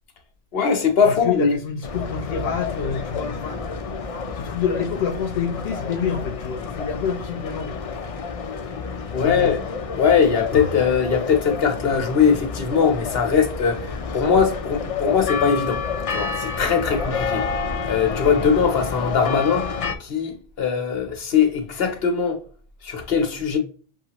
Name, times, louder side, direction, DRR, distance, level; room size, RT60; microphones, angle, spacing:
voice 1, 0.5-1.5 9.1-9.6 9.9-15.8 16.1-17.5 17.8-19.7 20.0-22.4 22.8-23.6, left 6 dB, 70° left, 1.2 m, -21 dB
voice 2, 1.0-3.7 4.3-7.8 9.2-9.5, left 6 dB, 90° left, 0.9 m, -27 dB
sound 1, 1.8-20.0, left 5 dB, 50° left, 0.4 m, -29 dB
6.6 x 2.4 x 2.8 m
omnidirectional pair, 1.1 m